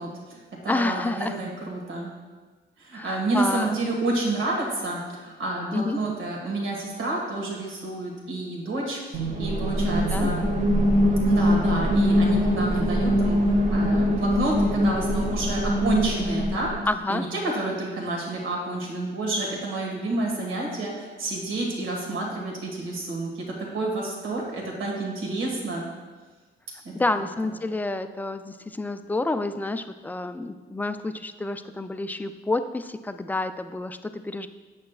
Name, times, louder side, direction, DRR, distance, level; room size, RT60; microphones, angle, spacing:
voice 1, 0.0-2.1 2.8-10.4 11.2-16.7 17.1-25.9 26.8-26.9, right 2 dB, 80° right, -1 dB, 1.8 m, -29 dB
voice 2, 0.7-1.3 2.9-3.7 5.7-6.0 10.1-10.3 16.9-17.2 26.9-34.5, left 2 dB, 10° left, 9 dB, 0.3 m, -29 dB
sound 1, 9.1-16.9, equal, 40° right, 1.0 m, -23 dB
8.3 x 7.3 x 2.4 m, 1.4 s
cardioid pair, 90°, 20 cm